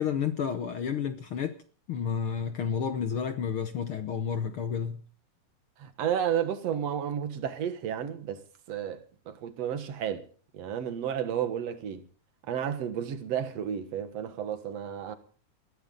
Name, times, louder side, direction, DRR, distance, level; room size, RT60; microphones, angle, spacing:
voice 1, 0.0-1.6 1.9-5.0, left 7 dB, 70° left, 1.3 m, -30 dB
voice 2, 5.8-10.3 10.5-12.0 12.4-15.2, right 9 dB, 60° right, 2.3 m, -32 dB
21.5 x 15.0 x 3.9 m
omnidirectional pair, 3.7 m